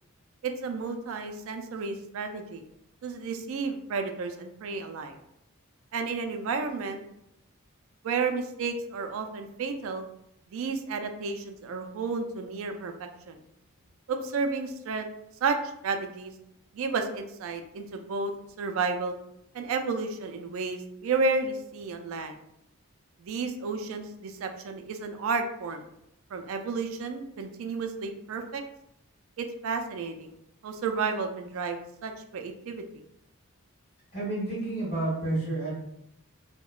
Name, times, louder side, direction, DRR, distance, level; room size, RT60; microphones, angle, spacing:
voice 1, 0.4-2.6 3.0-5.1 5.9-7.0 8.0-10.0 10.5-13.4 14.1-15.1 15.4-16.3 16.7-19.1 19.5-22.4 23.2-25.8 26.3-28.6 29.4-30.3 30.6-32.8, right 4 dB, 65° right, 6 dB, 0.3 m, -32 dB
voice 2, 34.1-35.7, right 2 dB, 30° left, -10 dB, 1.4 m, -30 dB
2.8 x 2.1 x 2.3 m, 0.80 s
head